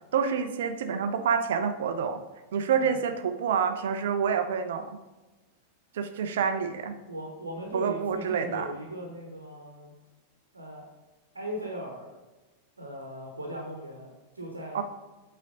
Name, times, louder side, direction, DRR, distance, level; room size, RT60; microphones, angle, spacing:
voice 1, 0.1-2.2 2.5-5.0 5.9-6.9 7.7-8.7 14.7-14.8, right 6 dB, 60° right, 8 dB, 0.7 m, -27 dB
voice 2, 7.1-9.9 10.5-10.9 11.3-12.2 12.8-14.8, right 1 dB, 80° right, 0 dB, 1.2 m, -38 dB
8.1 x 4.3 x 3.9 m, 1.1 s
figure-of-eight pair, 90°, 0 cm